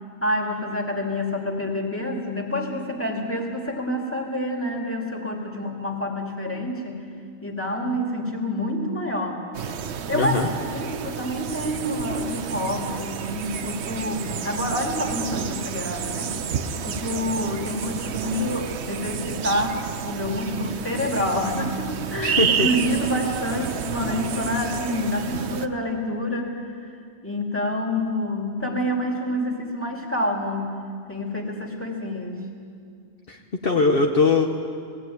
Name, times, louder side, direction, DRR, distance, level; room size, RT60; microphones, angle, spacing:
voice 1, 0.2-7.0 7.4-9.4 10.1-10.4 10.7-16.4 16.8-26.9 27.2-30.8 31.1-32.4, left 1 dB, 10° left, 0 dB, 2.6 m, -27 dB
sound 1, 9.5-25.7, right 7 dB, 70° right, 1.1 m, -30 dB
voice 2, 10.1-10.5 22.2-22.7 33.3-34.5, left 3 dB, 55° left, 2 dB, 1.4 m, -21 dB
20.5 x 16.5 x 9.3 m, 2.3 s
omnidirectional pair, 1.2 m